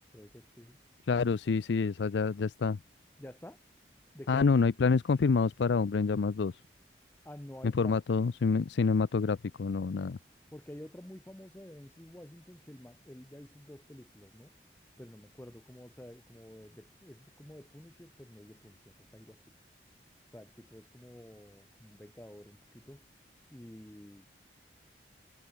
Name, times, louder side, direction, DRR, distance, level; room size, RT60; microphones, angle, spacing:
voice 1, 0.1-0.8 3.2-3.6 4.1-4.4 7.2-7.9 10.5-14.5 15.0-19.4 20.3-23.0 23.5-24.3, left 1 dB, 10° left, 0.7 m, -50 dB
voice 2, 1.1-2.8 4.3-6.6 7.6-10.2, left 4 dB, 80° left, 0.4 m, -27 dB
head